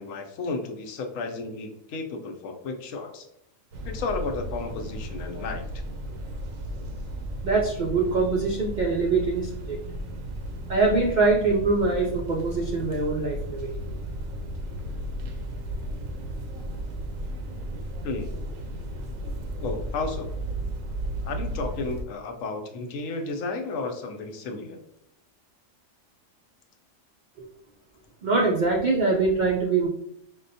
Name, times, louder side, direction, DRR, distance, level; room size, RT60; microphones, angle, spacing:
voice 1, 0.0-3.3 3.8-5.6 18.0-18.3 19.6-20.3 21.2-24.8, left 3 dB, 80° left, 5 dB, 1.0 m, -33 dB
sound 1, 3.7-22.0, right 1 dB, 85° right, 1.0 m, -34 dB
voice 2, 7.4-9.8 10.7-13.7 28.2-29.9, right 3 dB, 65° right, -2 dB, 0.4 m, -23 dB
5.4 x 2.2 x 2.6 m, 0.76 s
omnidirectional pair, 1.4 m